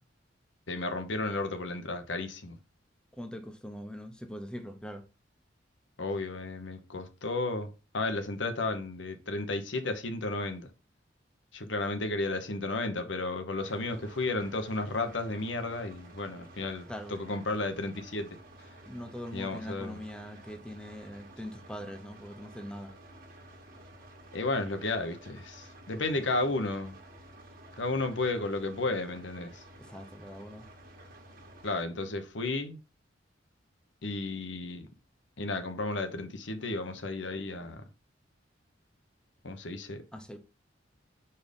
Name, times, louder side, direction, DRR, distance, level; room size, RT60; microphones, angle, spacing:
voice 1, 0.7-2.6 6.0-7.7 7.9-10.7 11.5-18.3 19.3-20.0 24.3-26.9 27.8-29.6 31.6-32.8 34.0-34.9 35.4-37.8 39.4-40.0, left 2 dB, 75° left, 1.0 m, -33 dB
voice 2, 3.1-5.0 16.9-17.1 18.8-22.9 29.8-30.7 40.1-40.4, equal, 5° left, 0.8 m, -42 dB
sound 1, 13.6-31.8, right 1 dB, 50° right, 1.5 m, -52 dB
5.1 x 4.5 x 5.2 m
head